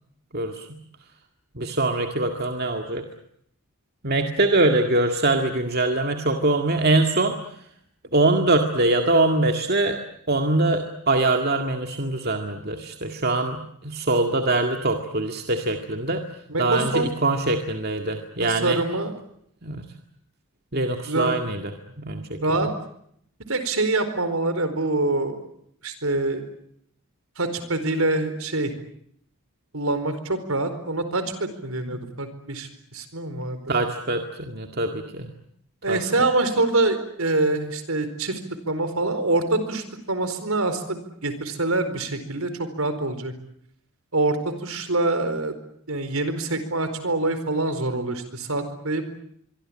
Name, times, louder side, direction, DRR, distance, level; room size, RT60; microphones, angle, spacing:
voice 1, 0.3-0.8 1.5-3.0 4.0-7.4 8.1-10.0 10.3-16.2 16.6-18.8 19.6-19.9 20.7-21.7 22.0-22.7 33.7-35.3 35.9-36.0, right 2 dB, 45° right, 5 dB, 2.0 m, -23 dB
voice 2, 16.5-17.1 18.4-19.1 21.1-21.4 22.4-22.7 23.5-25.5 25.8-26.4 27.4-28.7 29.7-33.6 35.8-38.4 38.7-43.3 44.1-45.6 45.9-49.0, right 2 dB, 70° right, 10 dB, 4.5 m, -25 dB
24.5 x 24.0 x 8.9 m, 0.70 s
head